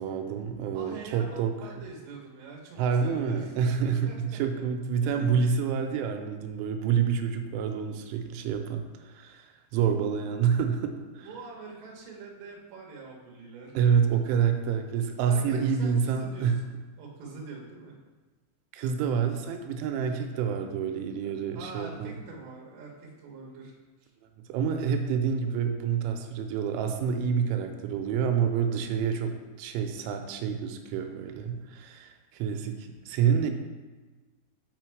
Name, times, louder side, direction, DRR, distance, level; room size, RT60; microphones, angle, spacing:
voice 1, 0.0-1.5 2.8-11.3 13.8-16.6 18.7-22.1 24.5-33.5, right 7 dB, 90° right, 5 dB, 3.1 m, -28 dB
voice 2, 0.7-3.5 3.8-4.6 5.0-5.3 11.2-14.0 15.2-18.0 21.2-23.7, right 3 dB, 65° right, -2 dB, 2.4 m, -45 dB
5.7 x 5.4 x 4.6 m, 1.3 s
omnidirectional pair, 5.4 m